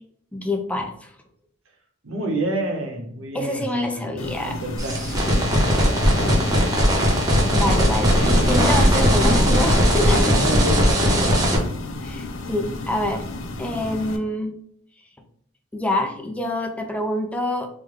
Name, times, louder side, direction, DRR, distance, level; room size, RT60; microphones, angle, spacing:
voice 1, 0.3-1.1 3.3-4.6 7.5-10.3 12.0-13.2 13.6-14.6 15.7-17.7, left 1 dB, 5° left, 4 dB, 0.4 m, -26 dB
voice 2, 2.0-3.7 3.9-4.1 4.4-6.2 7.3-7.5 10.0-11.6, right 1 dB, 80° right, 1 dB, 0.9 m, -29 dB
sound 1, 4.2-14.2, left 2 dB, 80° left, 0.5 m, -33 dB
sound 2, 4.8-11.6, equal, 20° right, 0.7 m, -19 dB
sound 3, 4.9-11.4, equal, 55° left, 1.1 m, -24 dB
3.5 x 2.1 x 3.3 m, 0.68 s
head